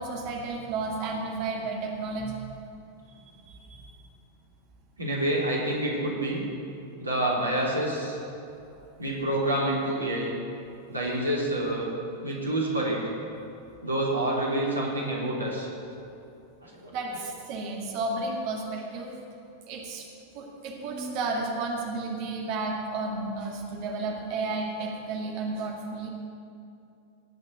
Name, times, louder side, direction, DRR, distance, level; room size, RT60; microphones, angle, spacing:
voice 1, 0.0-2.5 3.6-3.9 16.9-19.2 19.7-20.0 20.3-26.1, right 3 dB, 45° right, 0 dB, 2.2 m, -32 dB
voice 2, 5.0-6.4 7.0-8.2 9.0-10.3 10.9-11.9 12.2-13.0 13.8-15.7 16.6-16.9, right 1 dB, 80° right, -4 dB, 3.4 m, -27 dB
17.5 x 6.6 x 8.3 m, 2.6 s
figure-of-eight pair, 90°, 0 cm